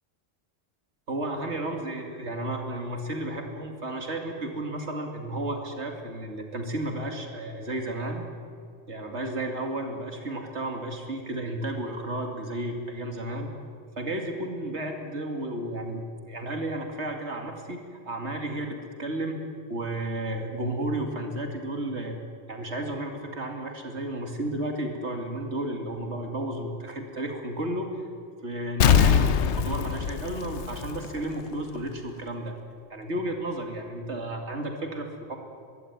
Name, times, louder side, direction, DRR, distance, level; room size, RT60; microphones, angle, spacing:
voice 1, 1.1-8.3 8.9-13.5 14.0-19.4 19.7-22.2 22.5-28.1 28.4-32.5 32.9-35.4, right 1 dB, 85° right, 3 dB, 2.8 m, -33 dB
Explosion, 28.8-31.4 31.8-31.9, left 8 dB, 80° left, 1.1 m, -22 dB
23.0 x 16.0 x 9.5 m, 2.3 s
omnidirectional pair, 1.1 m